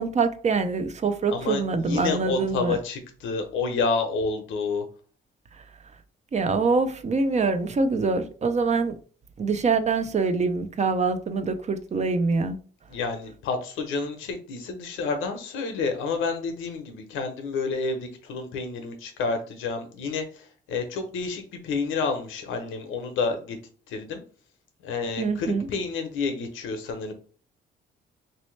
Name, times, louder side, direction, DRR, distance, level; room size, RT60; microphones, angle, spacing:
voice 1, 0.0-2.8 6.3-8.9 9.4-12.6 25.2-25.7, right 4 dB, 35° right, 0.5 m, -24 dB
voice 2, 1.3-4.8 12.9-23.6 23.9-24.2 24.8-27.1, left 4 dB, 90° left, 0.8 m, -29 dB
3.1 x 2.7 x 3.2 m
cardioid pair, 90°, 20 cm